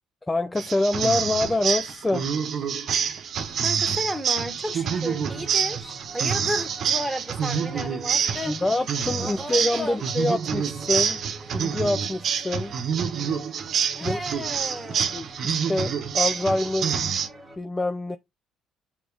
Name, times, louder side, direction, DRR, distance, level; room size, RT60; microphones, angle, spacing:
voice 1, 0.3-2.3 8.4-11.2 11.5-12.7 14.0-14.2 15.1-17.0 17.6-18.2, left 2 dB, 15° left, 0.6 m, -26 dB
sound 1, 0.6-17.3, right 7 dB, 55° right, 1.1 m, -27 dB
voice 2, 3.6-8.6 9.2-10.0 13.9-15.2, equal, ahead, 2.0 m, -33 dB
sound 2, 4.5-17.6, right 2 dB, 25° right, 1.5 m, -46 dB
6.7 x 3.8 x 4.8 m
hypercardioid pair, 55°, 0 cm